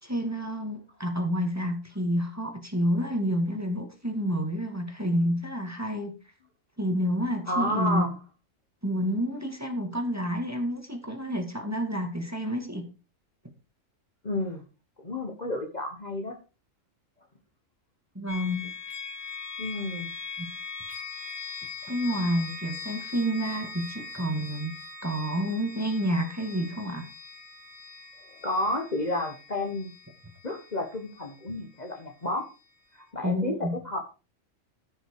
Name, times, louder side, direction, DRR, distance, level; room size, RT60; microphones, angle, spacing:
voice 1, 0.0-6.1 6.8-8.1 8.8-12.9 18.1-18.6 20.4-20.5 21.9-24.7 25.0-27.0 33.2-33.7, equal, 10° right, 3 dB, 2.3 m, -29 dB
voice 2, 7.5-8.1 14.2-14.6 15.0-16.3 19.6-20.1 28.4-29.9 30.4-32.5 33.1-34.0, left 1 dB, 35° left, 3 dB, 1.5 m, -31 dB
sound 1, 18.3-32.1, left 4 dB, 80° left, 5.2 m, -41 dB
14.5 x 6.4 x 4.8 m, 0.33 s
omnidirectional pair, 1.4 m